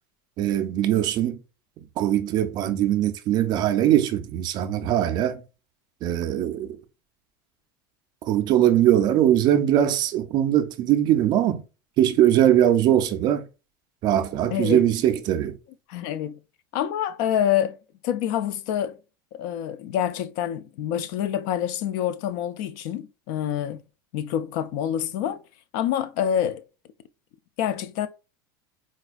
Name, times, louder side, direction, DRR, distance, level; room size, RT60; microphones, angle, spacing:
voice 1, 0.4-1.4 1.8-5.4 6.0-6.8 8.3-11.6 12.0-13.5 14.0-15.6, right 11 dB, 40° right, 0.4 m, -21 dB
voice 2, 14.5-14.8 15.9-16.4 16.7-17.8 18.0-19.0 19.3-23.8 24.1-25.4 25.7-26.6 27.6-28.1, left 10 dB, 60° left, 0.4 m, -26 dB
4.1 x 2.3 x 2.4 m
supercardioid pair, 140°, 11 cm